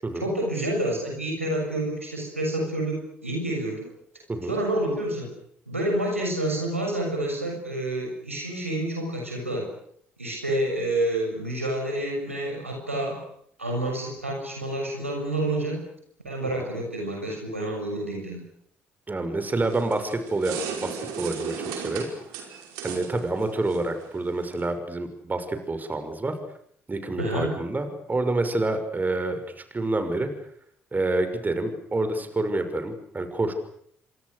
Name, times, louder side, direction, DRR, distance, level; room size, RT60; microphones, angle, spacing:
voice 1, 0.1-3.9 4.5-5.3 5.7-9.7 10.2-13.2 13.6-15.8 16.2-18.4 27.2-27.5, right 1 dB, 90° right, 0 dB, 6.6 m, -28 dB
voice 2, 19.1-20.6 20.8-22.1 22.4-22.5 22.8-26.3 26.9-29.4 29.7-30.3 30.9-33.5, right 2 dB, 25° right, 8 dB, 6.2 m, -28 dB
sound 1, 19.4-24.7, right 7 dB, 65° right, 5.4 m, -37 dB
30.0 x 25.5 x 6.8 m, 0.68 s
figure-of-eight pair, 45°, 7 cm